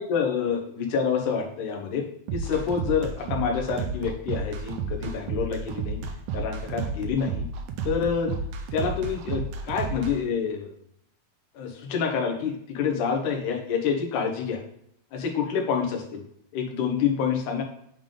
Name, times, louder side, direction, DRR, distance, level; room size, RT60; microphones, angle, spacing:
voice 1, 0.0-2.1 2.3-6.0 6.3-7.5 7.8-8.3 8.7-10.7 11.5-14.6 15.1-16.2 16.5-17.6, left 6 dB, 70° left, 1 dB, 2.2 m, -27 dB
sound 1, 2.3-10.1, right 4 dB, 80° right, 1.8 m, -32 dB
9.0 x 3.4 x 3.7 m, 0.72 s
omnidirectional pair, 4.3 m